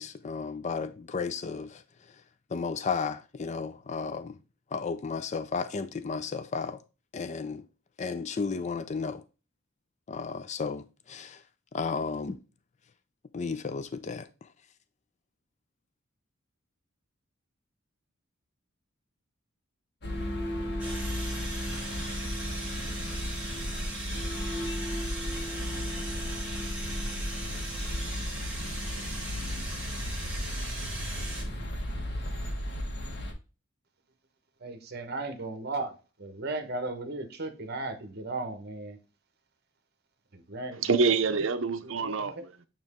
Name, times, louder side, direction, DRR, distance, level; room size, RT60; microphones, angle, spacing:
voice 1, 0.0-1.8 2.5-4.4 4.7-6.8 7.1-7.6 8.0-9.2 10.1-11.4 11.7-12.4 13.3-14.3, left 5 dB, 35° left, 0.4 m, -33 dB
sound 1, 20.0-33.3, equal, 55° left, 1.5 m, -34 dB
sound 2, 20.8-31.4, right 2 dB, 5° right, 1.9 m, -39 dB
voice 2, 34.6-39.0 40.3-40.8 41.4-41.5 41.8-42.4, right 2 dB, 50° right, 1.2 m, -36 dB
voice 3, 40.8-42.7, right 4 dB, 65° right, 0.7 m, -26 dB
9.1 x 3.0 x 3.6 m
head